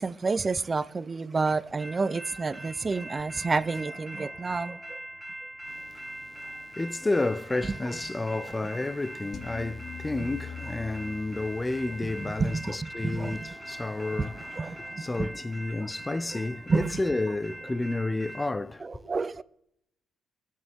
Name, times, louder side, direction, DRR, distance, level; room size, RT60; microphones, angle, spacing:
voice 1, 0.0-5.0 12.4-13.5 14.6-15.3 15.8-15.9 16.7-16.9 18.8-19.4, right 4 dB, 30° right, 0.6 m, -29 dB
sound 1, 1.8-18.5, right 1 dB, 10° right, 1.4 m, -42 dB
voice 2, 5.7-18.9, left 2 dB, 20° left, 0.5 m, -31 dB
sound 2, 9.3-14.6, left 7 dB, 55° left, 1.0 m, -44 dB
24.0 x 8.6 x 3.7 m
cardioid pair, 90°, 0 cm